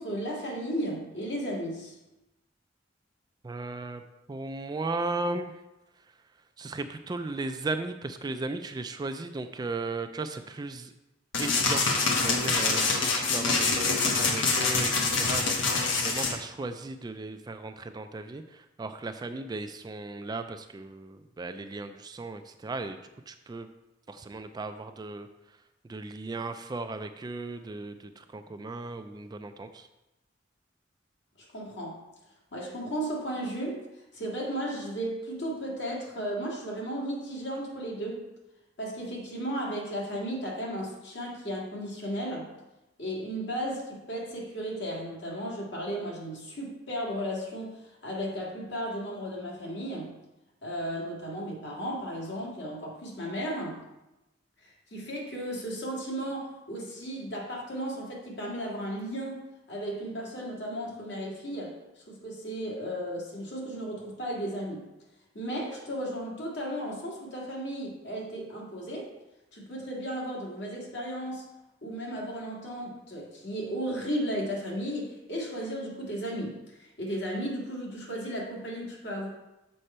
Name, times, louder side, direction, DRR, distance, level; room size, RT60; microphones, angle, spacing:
voice 1, 0.0-2.0 31.4-32.0 32.5-33.8 34.1-38.2 38.8-42.5 43.0-50.1 50.6-53.8 54.6-64.9 65.3-69.1 69.5-71.4 71.8-79.3, equal, 65° left, -2 dB, 2.0 m, -35 dB
voice 2, 3.4-4.0 4.3-5.6 6.6-10.9 11.4-15.6 16.0-23.0 23.3-23.7 24.1-25.3 25.9-29.9, right 3 dB, 20° right, 8 dB, 0.3 m, -36 dB
sound 1, 11.3-16.3, left 4 dB, 85° left, 1.0 m, -25 dB
6.6 x 5.4 x 4.3 m, 0.97 s
head